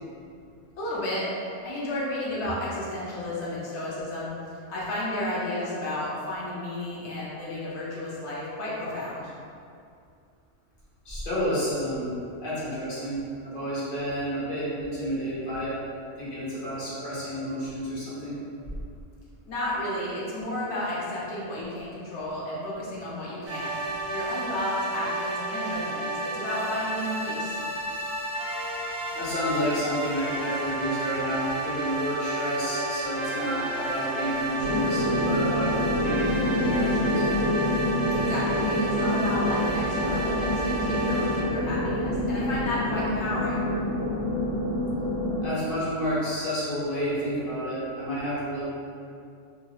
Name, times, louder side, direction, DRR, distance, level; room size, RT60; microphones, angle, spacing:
voice 1, 0.8-1.3 1.6-4.3 4.7-9.3 19.4-23.8 24.1-27.6 38.1-43.7, left 1 dB, 65° left, -7 dB, 0.9 m, -32 dB
voice 2, 11.0-12.1 12.4-15.7 16.2-18.4 29.1-37.2 45.4-48.7, equal, 45° left, -10 dB, 1.1 m, -30 dB
sound 1, 23.4-41.4, right 2 dB, 70° right, 0.8 m, -31 dB
sound 2, 34.6-45.5, left 1 dB, 30° left, 0.4 m, -27 dB
2.9 x 2.7 x 2.2 m, 2.4 s
omnidirectional pair, 1.3 m